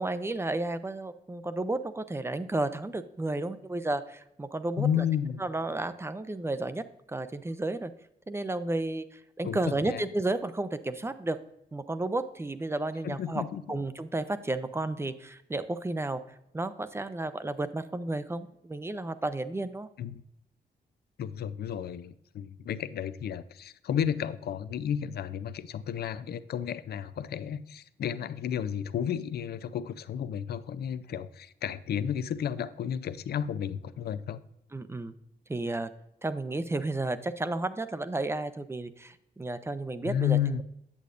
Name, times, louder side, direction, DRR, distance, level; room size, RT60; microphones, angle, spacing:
voice 1, 0.0-5.1 5.4-6.8 7.1-7.9 8.3-11.4 11.7-16.2 16.5-19.9 34.7-35.1 35.5-35.9 36.2-40.4, right 2 dB, 15° right, 12 dB, 0.5 m, -32 dB
voice 2, 4.8-5.4 9.4-10.0 13.0-13.6 20.0-20.1 21.2-34.4 40.0-40.6, left 9 dB, 70° left, 14 dB, 0.4 m, -32 dB
8.4 x 8.0 x 2.5 m, 0.82 s
wide cardioid pair, 120°, 17 cm